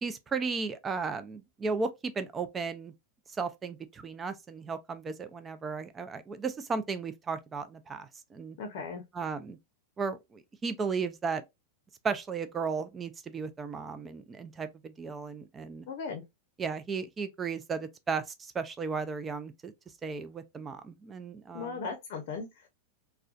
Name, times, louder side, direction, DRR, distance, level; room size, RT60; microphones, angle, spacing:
voice 1, 0.0-1.9 2.2-2.9 3.4-8.6 9.1-9.6 10.0-11.4 12.0-15.9 16.6-19.7 20.0-21.8, right 5 dB, 20° right, 0.4 m, -35 dB
voice 2, 8.6-9.0 15.9-16.2 21.5-22.7, left 5 dB, 60° left, 0.6 m, -37 dB
2.3 x 2.1 x 2.5 m
supercardioid pair, 130°, 0 cm